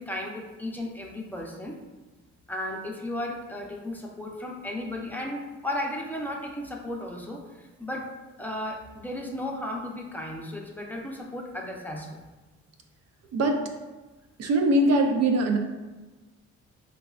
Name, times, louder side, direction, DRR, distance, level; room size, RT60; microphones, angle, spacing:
voice 1, 0.0-1.8 2.5-8.1 8.4-12.2, left 1 dB, 5° left, -1 dB, 0.6 m, -35 dB
voice 2, 13.3-13.6 14.4-15.6, right 1 dB, 55° right, 3 dB, 0.5 m, -22 dB
5.9 x 2.3 x 2.3 m, 1.2 s
cardioid pair, 90°, 30 cm